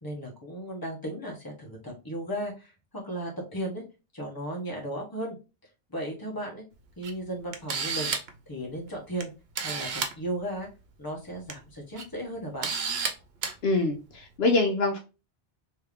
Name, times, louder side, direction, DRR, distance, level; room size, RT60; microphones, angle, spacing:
voice 1, 0.0-2.7 3.0-3.8 4.1-5.4 5.9-6.6 7.0-8.1 8.5-9.3 9.6-9.9 10.2-10.7 11.0-12.7, right 1 dB, 20° left, -1 dB, 1.2 m, -35 dB
Camera, 7.0-7.1 7.5-8.4 9.2-9.3 9.5-10.1 11.3-11.5 12.0-12.1 12.6-13.1 13.4-13.5, right 5 dB, 70° right, 0.9 m, -30 dB
voice 2, 13.6-15.0, left 2 dB, 70° left, 3 dB, 0.9 m, -24 dB
3.3 x 2.8 x 3.4 m, 0.30 s
omnidirectional pair, 1.1 m